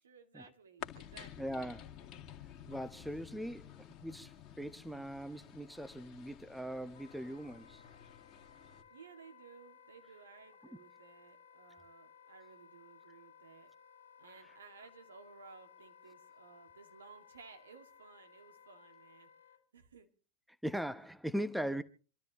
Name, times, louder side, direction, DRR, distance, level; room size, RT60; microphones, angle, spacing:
voice 1, 0.0-1.7 2.3-2.5 8.9-13.7 14.2-19.3 19.7-20.1, right 5 dB, 70° right, 2.2 m, -57 dB
sound 1, 0.8-8.8, left 9 dB, 35° left, 2.2 m, -52 dB
voice 2, 1.4-1.9 2.7-7.8 20.6-21.8, equal, ahead, 0.9 m, -40 dB
Wind instrument woodwind instrument, 6.9-19.6, left 7 dB, 70° left, 2.0 m, -60 dB
27.0 x 13.0 x 3.1 m
figure-of-eight pair, 90°, 0 cm